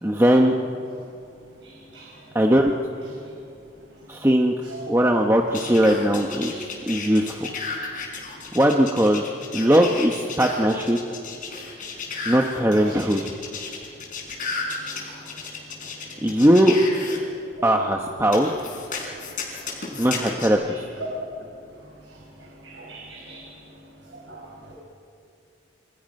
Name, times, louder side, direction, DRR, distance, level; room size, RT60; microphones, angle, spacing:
voice 1, 0.0-0.5 2.3-2.7 4.1-4.5 4.9-7.5 8.5-9.2 9.5-11.1 12.2-13.2 16.2-16.7 17.6-18.5 19.9-20.8, equal, 15° right, 1 dB, 1.0 m, -19 dB
sound 1, 5.5-17.2 18.3-20.5, left 4 dB, 45° left, 5.1 m, -33 dB
voice 2, 22.6-23.4 24.3-24.5, right 2 dB, 80° right, -3 dB, 5.3 m, -41 dB
28.5 x 27.5 x 5.4 m, 2.5 s
head